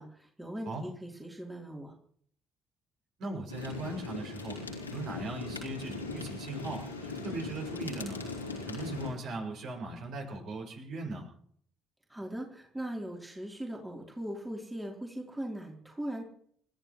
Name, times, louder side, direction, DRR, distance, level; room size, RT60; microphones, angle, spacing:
voice 1, 0.0-1.9 12.1-16.2, right 1 dB, 10° right, -1 dB, 3.6 m, -39 dB
voice 2, 3.2-4.6 4.9-8.2 8.7-11.3, right 2 dB, 55° right, 1 dB, 6.4 m, -39 dB
sound 1, 3.5-9.1, left 3 dB, 85° left, 3.2 m, -39 dB
29.5 x 14.0 x 3.2 m, 0.62 s
figure-of-eight pair, 50°, 0 cm